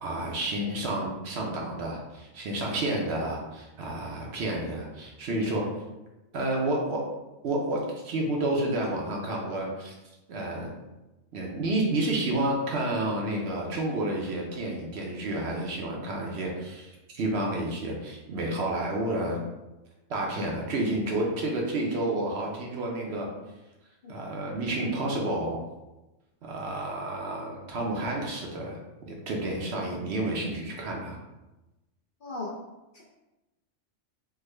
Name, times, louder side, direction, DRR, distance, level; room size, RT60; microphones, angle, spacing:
voice 1, 0.0-5.7 6.3-7.1 7.4-9.9 10.3-10.7 11.3-19.4 20.1-23.3 24.1-25.6 26.4-31.2, right 1 dB, 65° right, -1 dB, 0.8 m, -30 dB
voice 2, 32.2-32.6 32.9-33.0, left 3 dB, 55° left, -4 dB, 0.6 m, -36 dB
3.4 x 2.1 x 3.2 m, 1.0 s
omnidirectional pair, 1.3 m